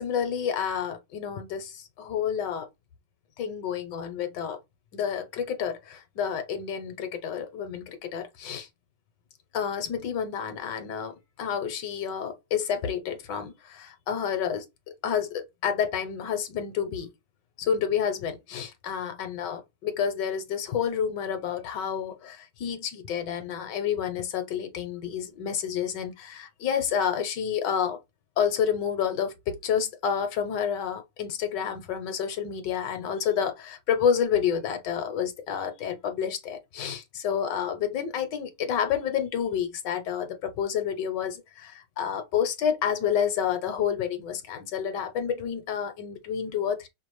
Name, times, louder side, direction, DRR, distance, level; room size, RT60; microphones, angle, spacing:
voice 1, 0.0-2.7 3.4-4.6 4.9-8.7 9.5-14.6 15.0-17.1 17.6-28.0 28.4-46.9, left 8 dB, 75° left, 1.4 m, -29 dB
5.1 x 2.4 x 3.1 m
omnidirectional pair, 2.0 m